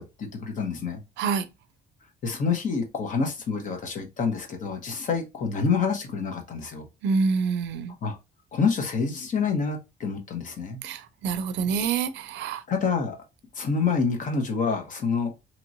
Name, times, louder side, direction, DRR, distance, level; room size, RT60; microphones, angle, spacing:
voice 1, 0.0-1.0 2.2-6.8 8.0-8.2 8.5-10.8 12.7-13.2 13.6-15.3, left 5 dB, 45° left, 0.9 m, -27 dB
voice 2, 1.2-1.5 7.0-7.9 10.8-12.6, right 5 dB, 80° right, 0.5 m, -26 dB
3.0 x 2.9 x 2.6 m
cardioid pair, 155°, 18 cm